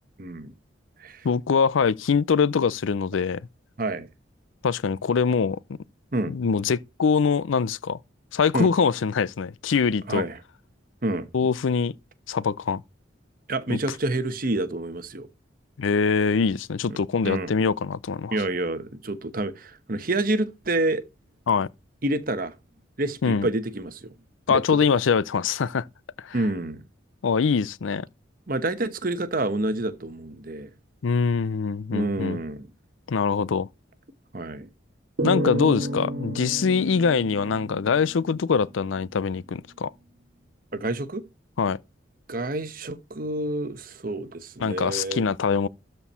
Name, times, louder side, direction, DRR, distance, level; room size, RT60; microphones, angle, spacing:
voice 1, 0.2-0.5 1.0-1.3 3.8-4.1 6.1-6.3 8.5-8.7 10.1-10.4 11.0-11.3 13.5-15.3 17.2-17.5 18.3-21.0 22.0-22.5 23.0-24.1 24.5-24.8 26.3-26.8 28.5-30.7 31.9-32.7 34.3-34.7 40.7-41.2 42.3-45.2, right 2 dB, 45° right, 1.1 m, -28 dB
voice 2, 1.2-3.4 4.6-5.6 6.3-8.0 8.3-10.2 11.3-11.9 12.3-12.8 13.7-13.8 15.8-18.4 21.5-21.7 23.2-23.5 24.5-25.9 26.2-26.4 27.2-28.1 31.0-32.4 33.1-33.7 35.2-39.9 41.6-41.8 44.6-45.7, left 5 dB, 85° left, 0.5 m, -23 dB
sound 1, 35.2-38.6, equal, 75° right, 1.5 m, -31 dB
13.0 x 4.5 x 5.6 m
head